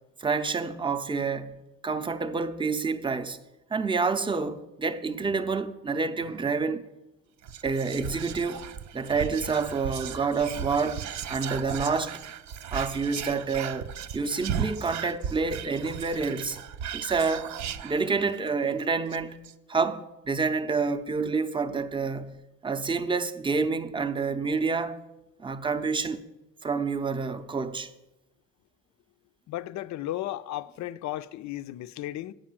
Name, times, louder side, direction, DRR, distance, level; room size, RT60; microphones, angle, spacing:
voice 1, 0.2-3.4 3.7-6.8 7.6-8.6 8.9-12.2 12.7-13.9 14.1-16.6 16.9-17.5 17.8-19.4 19.7-25.0 25.4-26.2 26.6-27.9, right 4 dB, 15° right, 0.6 m, -28 dB
Whispering, 7.4-18.5 18.8-18.9 19.1-19.5, right 8 dB, 60° right, 0.6 m, -36 dB
voice 2, 29.5-32.3, left 14 dB, 65° left, 0.5 m, -34 dB
8.7 x 5.4 x 7.4 m
cardioid pair, 105°, 32 cm